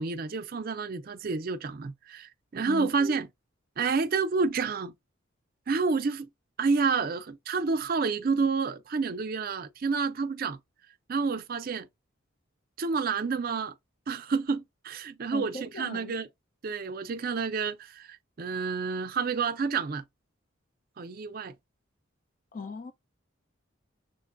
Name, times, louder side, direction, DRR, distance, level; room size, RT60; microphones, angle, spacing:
voice 1, 0.0-3.3 3.8-4.9 5.7-6.3 6.6-10.6 11.1-11.9 12.8-13.7 14.1-16.3 16.6-20.0 21.0-21.5, right 4 dB, 45° right, 0.4 m, -29 dB
voice 2, 15.3-16.1 22.5-22.9, left 4 dB, 40° left, 0.4 m, -38 dB
6.5 x 2.2 x 2.5 m
head